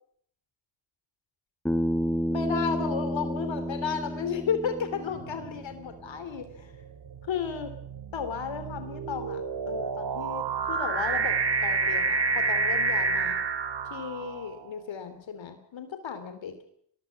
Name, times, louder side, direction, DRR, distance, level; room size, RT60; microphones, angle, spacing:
Bass guitar, 1.7-6.0, equal, 5° left, 2.5 m, -31 dB
voice 1, 2.3-6.7 7.2-7.7 8.1-13.4 13.9-16.6, left 6 dB, 75° left, 9 dB, 3.2 m, -34 dB
sound 1, 5.2-5.6 6.4-14.6, right 4 dB, 65° right, 2.8 m, -29 dB
22.0 x 20.0 x 8.3 m, 0.66 s
cardioid pair, 50°, 46 cm